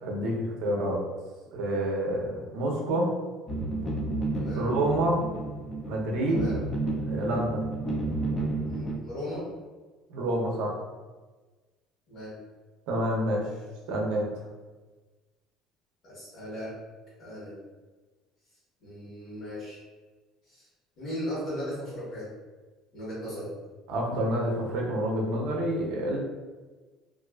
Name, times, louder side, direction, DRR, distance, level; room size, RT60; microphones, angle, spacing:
voice 1, 0.0-1.0 1.5-3.1 4.6-5.2 5.9-6.4 7.1-7.6 10.1-10.8 12.9-13.4 13.9-14.3 23.9-26.2, right 1 dB, 70° right, -2 dB, 0.6 m, -28 dB
sound 1, 3.5-9.0, right 2 dB, 20° left, 0.4 m, -31 dB
voice 2, 4.3-4.6 6.3-6.6 8.6-9.4 12.1-12.3 16.0-16.7 17.2-17.5 18.8-19.8 20.5-20.6 21.0-22.3 22.9-23.5, equal, 45° left, -12 dB, 1.1 m, -37 dB
2.5 x 2.3 x 2.3 m, 1.3 s
cardioid pair, 160°, 0 cm